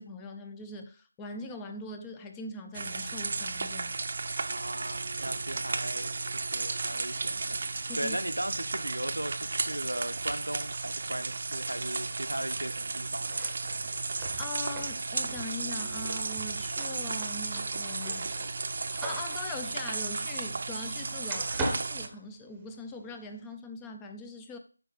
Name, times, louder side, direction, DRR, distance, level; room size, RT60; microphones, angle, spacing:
voice 1, 0.0-4.0 7.9-8.2 14.4-18.3 19.0-24.6, left 2 dB, 10° left, 0.5 m, -41 dB
sound 1, 2.7-22.1, right 3 dB, 40° right, 0.7 m, -34 dB
voice 2, 4.5-13.4, right 1 dB, 90° right, 0.9 m, -37 dB
sound 2, 13.2-21.0 21.3-22.9, right 2 dB, 5° right, 0.9 m, -41 dB
7.9 x 5.8 x 4.1 m
figure-of-eight pair, 165°, 0 cm